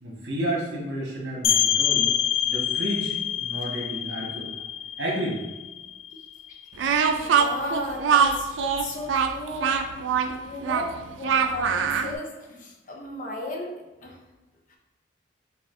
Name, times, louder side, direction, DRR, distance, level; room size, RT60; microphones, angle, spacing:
voice 1, 0.0-2.1 2.4-4.5 5.0-5.4, right 1 dB, 65° right, -4 dB, 1.3 m, -31 dB
sound 1, 1.4-6.9, left 9 dB, 85° left, 0.3 m, -26 dB
voice 2, 6.1-6.6 6.9-9.8 10.3-13.7 14.0-14.2 14.7-14.8, left 2 dB, 45° left, 0 dB, 0.6 m, -35 dB
Speech, 6.8-12.1, right 6 dB, 90° right, 0.3 m, -23 dB
5.5 x 2.5 x 2.5 m, 1.1 s
head